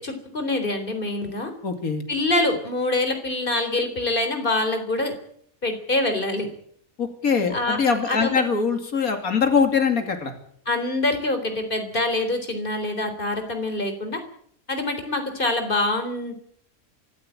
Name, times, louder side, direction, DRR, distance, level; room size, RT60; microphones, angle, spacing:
voice 1, 0.0-1.5 2.1-5.1 5.6-6.5 7.5-7.8 8.1-8.4 10.7-14.2 14.7-16.3, left 2 dB, 40° left, 7 dB, 3.9 m, -25 dB
voice 2, 1.6-2.0 7.0-10.3, left 5 dB, 85° left, 6 dB, 2.9 m, -22 dB
24.5 x 14.5 x 8.9 m, 0.67 s
omnidirectional pair, 1.5 m